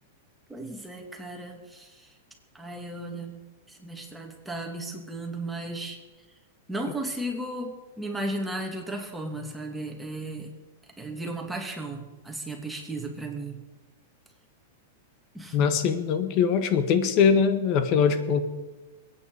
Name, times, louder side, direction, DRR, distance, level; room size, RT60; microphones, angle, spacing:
voice 1, 0.5-2.1 2.5-3.4 3.7-6.0 6.7-10.5 11.0-13.6 15.3-15.7, right 1 dB, 5° right, 1 dB, 2.7 m, -35 dB
voice 2, 15.5-18.4, left 6 dB, 45° left, 9 dB, 1.7 m, -22 dB
22.0 x 9.5 x 5.1 m, 1.2 s
hypercardioid pair, 120°, 0 cm